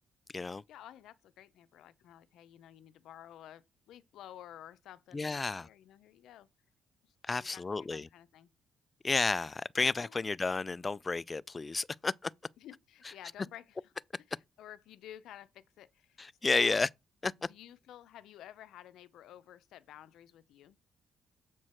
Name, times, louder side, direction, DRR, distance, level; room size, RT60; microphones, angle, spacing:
voice 1, 0.7-6.5 7.0-8.5 10.0-10.2 12.6-13.9 14.3-16.2 16.5-16.9 17.4-20.8, left 12 dB, 80° left, 0.6 m, -52 dB
voice 2, 5.1-5.7 7.2-8.1 9.0-12.3 16.2-16.9 17.2-17.3, left 3 dB, 25° left, 0.3 m, -31 dB
7.5 x 4.6 x 4.4 m
cardioid pair, 90°, 0 cm